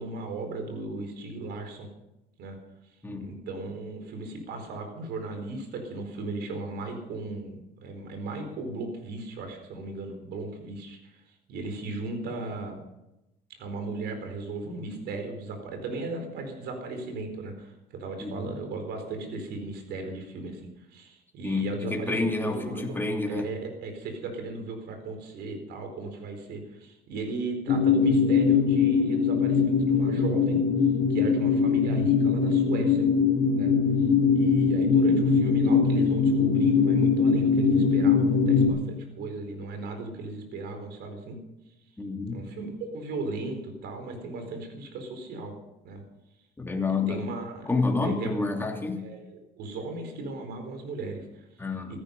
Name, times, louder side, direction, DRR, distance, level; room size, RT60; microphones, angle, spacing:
voice 1, 0.0-1.9 2.4-2.6 3.2-11.2 11.5-12.8 13.6-23.0 23.3-30.6 31.1-33.1 33.6-33.7 34.3-41.4 42.3-45.5 45.8-46.0 46.9-47.7 48.0-48.3 49.0-51.5 51.9-52.0, right 3 dB, 80° right, 5 dB, 4.5 m, -36 dB
voice 2, 21.4-23.5 42.0-42.4 46.6-47.2 47.7-49.1 51.6-51.9, left 3 dB, 10° left, 1 dB, 2.9 m, -29 dB
sound 1, 27.7-38.7, left 5 dB, 75° left, 2.8 m, -22 dB
16.0 x 13.5 x 5.5 m, 0.93 s
cardioid pair, 110°, 17 cm